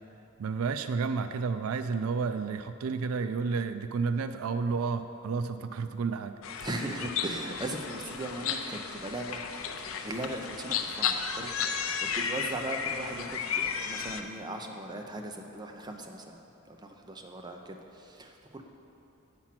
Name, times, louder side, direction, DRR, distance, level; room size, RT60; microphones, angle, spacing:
voice 1, 0.4-6.3, right 5 dB, 90° right, 10 dB, 0.4 m, -31 dB
sound 1, 6.4-14.2, left 6 dB, 75° left, 0.5 m, -34 dB
voice 2, 6.6-9.4 10.0-11.9 12.1-16.4 16.7-18.6, right 1 dB, 20° right, 2 dB, 0.6 m, -38 dB
8.6 x 6.0 x 5.8 m, 2.9 s
head